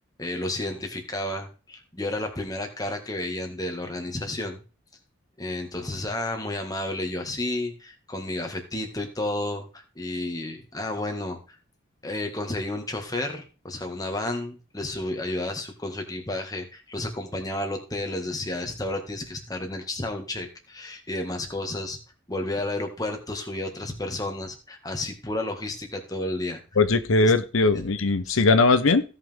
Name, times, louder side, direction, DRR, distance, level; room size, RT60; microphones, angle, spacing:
voice 1, 0.2-4.6 5.4-11.4 12.0-22.0 22.3-26.6 27.2-27.3 27.7-27.8 28.3-28.4, left 1 dB, 20° left, 4 dB, 1.8 m, -31 dB
voice 2, 26.8-29.0, left 3 dB, 90° left, 11 dB, 0.8 m, -20 dB
16.0 x 5.8 x 3.6 m, 0.34 s
head